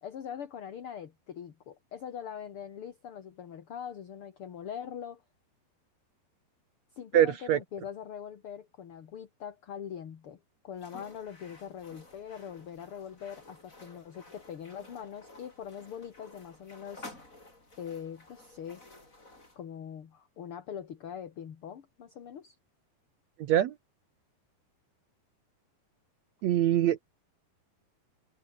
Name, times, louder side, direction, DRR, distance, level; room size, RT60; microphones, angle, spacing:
voice 1, 0.0-5.2 6.9-10.4 10.6-17.2 17.8-18.8 19.6-22.6, left 8 dB, 45° left, 1.9 m, -42 dB
voice 2, 7.1-7.6 23.4-23.7 26.4-27.1, right 11 dB, 85° right, 1.5 m, -24 dB
sound 1, 10.7-19.6, left 2 dB, 20° left, 6.0 m, -53 dB
omnidirectional pair, 4.7 m